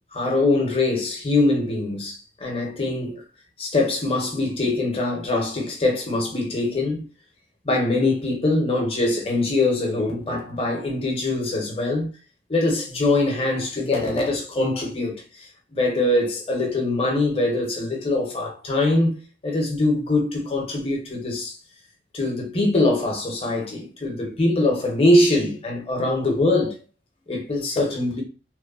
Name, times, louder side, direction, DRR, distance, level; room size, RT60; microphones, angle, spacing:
voice 1, 0.1-3.2 3.6-7.0 7.6-12.1 12.5-19.2 19.4-21.6 22.1-26.8 27.3-28.2, left 2 dB, 30° left, 0.6 m, -23 dB
3.0 x 2.1 x 2.3 m
head